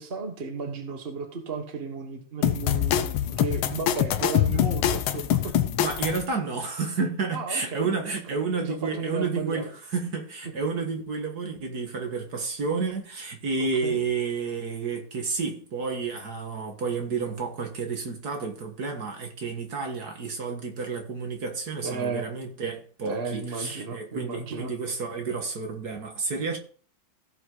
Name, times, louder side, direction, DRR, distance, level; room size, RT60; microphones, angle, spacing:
voice 1, 0.0-5.5 7.3-9.7 13.8-14.0 21.8-22.2 23.0-24.7, right 4 dB, 30° right, 1.5 m, -34 dB
sound 1, 2.4-6.2, left 11 dB, 85° left, 1.6 m, -24 dB
voice 2, 5.8-26.6, right 4 dB, 50° right, 2.0 m, -30 dB
16.0 x 5.6 x 3.9 m
omnidirectional pair, 2.2 m